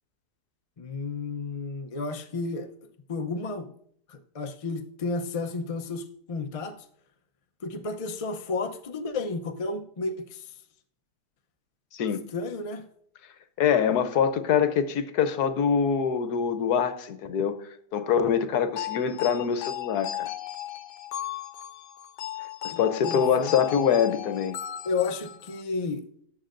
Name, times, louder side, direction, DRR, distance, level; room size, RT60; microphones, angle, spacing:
voice 1, 0.8-2.7 3.1-3.7 4.1-6.8 7.6-10.5 12.3-12.9 22.7-23.5 24.8-26.0, left 3 dB, 45° left, 0.4 m, -32 dB
voice 2, 13.6-17.6 17.9-20.3 22.6-24.5, left 7 dB, 70° left, 1.3 m, -24 dB
sound 1, 18.8-25.6, left 12 dB, 90° left, 1.2 m, -36 dB
18.0 x 7.3 x 2.6 m
omnidirectional pair, 1.8 m